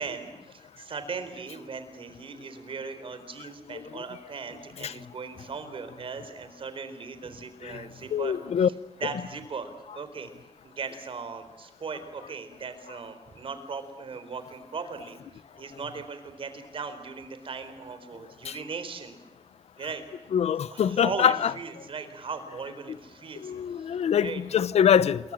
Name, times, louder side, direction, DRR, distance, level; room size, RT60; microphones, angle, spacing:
voice 1, 0.0-8.4 9.0-10.3 10.6-19.2 19.8-20.0 20.7-23.9 24.2-24.4, right 5 dB, 60° right, 4.2 m, -38 dB
voice 2, 8.1-8.7 18.4-18.6 20.3-21.5 23.4-25.3, left 8 dB, 85° left, 0.9 m, -24 dB
28.0 x 23.5 x 7.5 m
wide cardioid pair, 135°, 11 cm